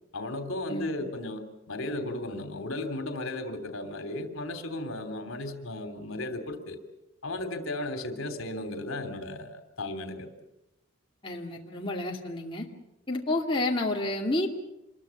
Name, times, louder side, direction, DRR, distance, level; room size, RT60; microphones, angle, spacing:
voice 1, 0.1-6.8 7.2-10.3, left 2 dB, 70° left, 7 dB, 3.0 m, -35 dB
voice 2, 11.2-12.6 13.1-14.5, left 2 dB, 25° left, -1 dB, 2.4 m, -30 dB
27.0 x 21.5 x 7.1 m, 0.89 s
head